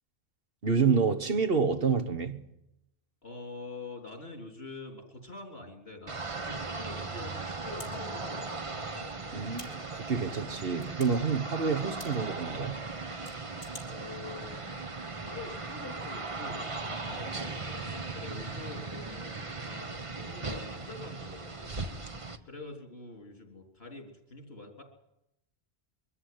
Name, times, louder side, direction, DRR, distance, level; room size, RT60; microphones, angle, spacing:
voice 1, 0.6-2.5 9.3-12.8, right 5 dB, 65° right, 1.5 m, -28 dB
voice 2, 3.2-8.6 13.9-14.6 15.2-21.8 22.4-24.8, left 3 dB, 70° left, 3.8 m, -45 dB
sound 1, 6.1-6.2 7.8-7.9 9.5-9.7 10.8-11.1 12.0-12.1 13.3-13.9, left 1 dB, 40° left, 3.9 m, -46 dB
sound 2, 6.1-22.4, right 3 dB, 30° right, 1.1 m, -38 dB
23.0 x 14.0 x 9.5 m
omnidirectional pair, 1.1 m